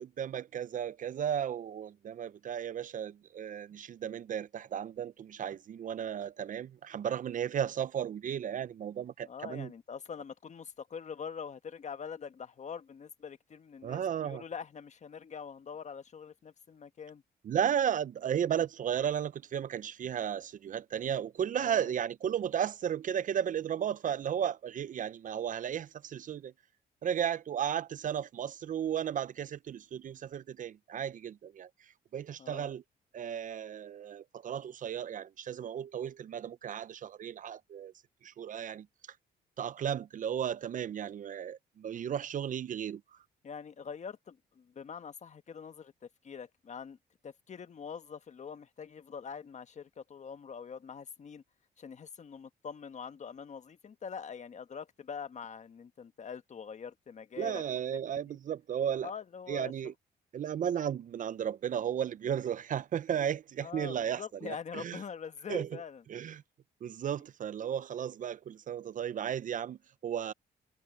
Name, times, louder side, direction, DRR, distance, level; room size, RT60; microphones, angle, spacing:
voice 1, 0.0-9.7 13.8-14.4 17.4-26.5 27.0-31.7 32.1-32.8 33.1-37.9 38.2-38.9 39.6-43.0 57.4-59.1 59.5-59.9 60.3-65.0 65.5-65.7 66.1-66.4 66.8-70.3, right 9 dB, 50° right, 0.6 m, -34 dB
voice 2, 9.2-17.2 21.6-21.9 32.4-32.7 43.4-45.9 46.2-47.0 47.2-51.4 51.8-57.6 57.9-58.0 59.0-59.7 63.6-66.0, left 6 dB, 45° left, 1.4 m, -44 dB
cardioid pair, 90°, 17 cm